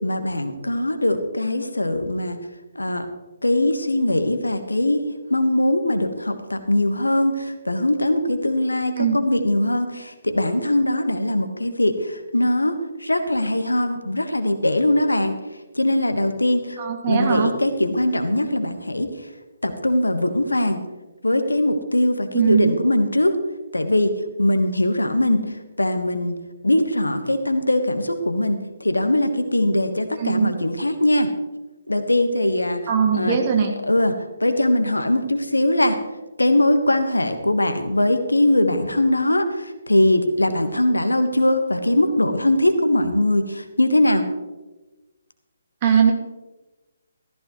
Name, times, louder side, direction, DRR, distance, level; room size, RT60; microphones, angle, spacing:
voice 1, 0.0-2.4 2.7-3.1 3.4-15.4 15.7-19.1 19.6-20.8 21.2-23.4 23.7-26.4 26.6-31.3 31.9-33.4 33.8-36.0 36.4-44.3, left 1 dB, 80° left, 8 dB, 1.4 m, -21 dB
voice 2, 16.8-17.5 22.3-22.8 30.2-30.5 32.9-33.7 45.8-46.1, right 7 dB, 30° right, 2 dB, 2.2 m, -20 dB
15.0 x 14.0 x 3.2 m, 1.1 s
figure-of-eight pair, 140°, 0 cm